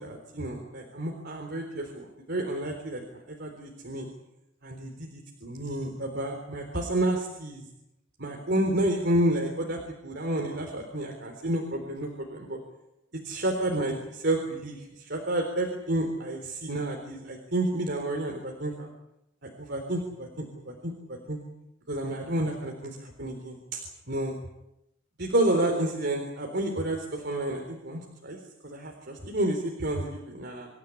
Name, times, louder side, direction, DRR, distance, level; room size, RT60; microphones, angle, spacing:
voice 1, 0.0-4.1 4.6-7.6 8.2-12.6 13.2-18.9 19.4-21.4 21.9-24.3 25.2-28.4 28.6-30.7, right 1 dB, 55° right, 2 dB, 3.8 m, -30 dB
27.0 x 14.5 x 10.0 m, 0.87 s
head